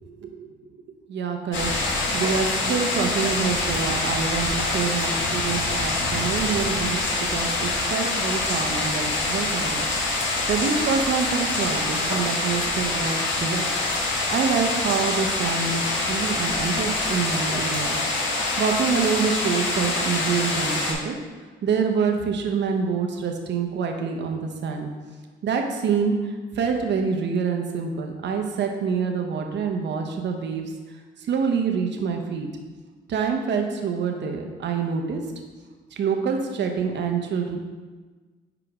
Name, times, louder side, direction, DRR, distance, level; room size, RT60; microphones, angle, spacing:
voice 1, 0.0-0.5 1.1-9.8 10.2-13.6 14.3-18.0 18.6-21.2 21.6-24.9 25.4-30.7 31.2-32.5 33.1-35.2 35.9-37.6, right 5 dB, 65° right, 3 dB, 0.9 m, -26 dB
sound 1, 1.5-20.9, left 2 dB, 75° left, 1.4 m, -25 dB
5.1 x 4.9 x 4.8 m, 1.3 s
cardioid pair, 90°, 20 cm